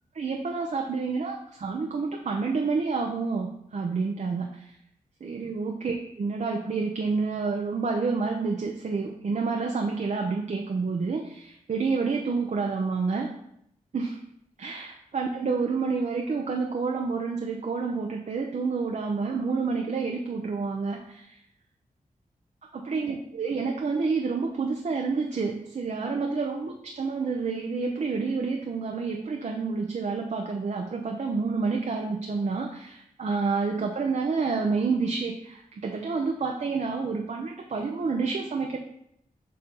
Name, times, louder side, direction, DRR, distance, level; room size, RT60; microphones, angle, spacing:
voice 1, 0.2-4.7 5.2-13.3 13.9-14.2 14.6-21.4 22.7-38.8, right 4 dB, 55° right, 1 dB, 0.6 m, -29 dB
6.6 x 2.8 x 5.3 m, 0.76 s
cardioid pair, 70°, 15 cm